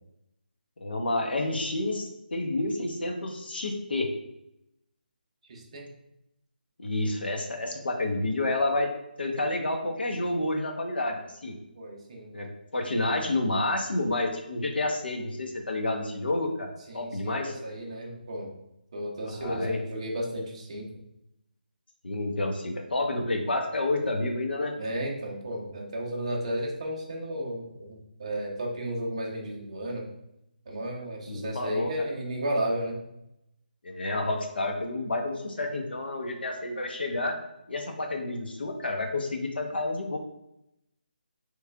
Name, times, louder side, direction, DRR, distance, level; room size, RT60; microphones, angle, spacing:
voice 1, 0.8-4.1 6.8-8.9 9.2-11.6 12.3-12.5 12.7-16.7 16.9-17.5 19.4-19.8 22.0-24.7 31.3-32.1 33.8-37.4 37.7-40.2, left 2 dB, 80° left, 3 dB, 0.8 m, -29 dB
voice 2, 5.5-5.9 11.8-12.3 16.9-18.5 18.9-20.9 24.8-30.0 30.7-33.0, right 1 dB, 35° right, -1 dB, 0.6 m, -33 dB
3.7 x 3.2 x 2.2 m, 0.84 s
hypercardioid pair, 170°, 5 cm